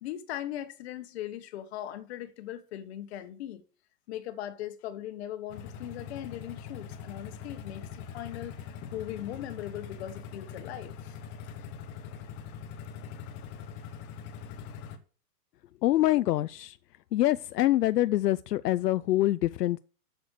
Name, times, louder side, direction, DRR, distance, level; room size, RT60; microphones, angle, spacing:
voice 1, 0.0-3.6 4.1-8.6 8.9-11.2, left 12 dB, 40° left, 1.5 m, -39 dB
sound 1, 5.5-15.0, left 7 dB, 20° left, 1.0 m, -42 dB
voice 2, 15.8-16.8 17.1-19.8, left 15 dB, 75° left, 0.6 m, -25 dB
7.9 x 7.1 x 6.4 m
hypercardioid pair, 155°, 48 cm